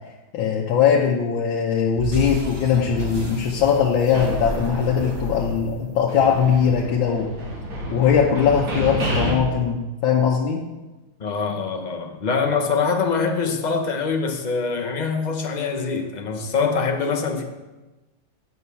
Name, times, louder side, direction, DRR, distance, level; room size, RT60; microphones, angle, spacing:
voice 1, 0.3-7.3 7.9-10.6, left 7 dB, 75° left, -2 dB, 1.7 m, -20 dB
sound 1, 2.0-6.4, right 2 dB, 20° right, 0.6 m, -33 dB
sound 2, 4.1-5.8 6.1-9.3, equal, 70° right, 2.8 m, -29 dB
voice 2, 11.2-17.4, left 5 dB, 45° left, 3 dB, 0.5 m, -24 dB
9.3 x 5.5 x 7.0 m, 1.1 s
omnidirectional pair, 2.2 m